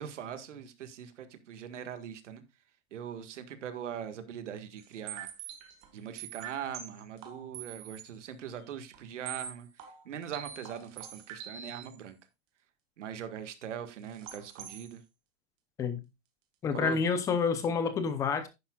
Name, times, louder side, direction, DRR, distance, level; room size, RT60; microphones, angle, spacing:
voice 1, 0.0-2.4 2.9-5.3 5.9-9.7 10.0-12.2 13.0-15.0 16.7-17.0, right 9 dB, 85° right, 1.7 m, -41 dB
sound 1, 4.8-8.1 8.4-8.5 8.9-9.0 9.3-12.0 14.1-14.9, right 9 dB, 30° right, 1.6 m, -44 dB
voice 2, 16.6-18.5, left 5 dB, 10° left, 0.6 m, -28 dB
10.5 x 9.8 x 2.3 m
supercardioid pair, 170°, 35 cm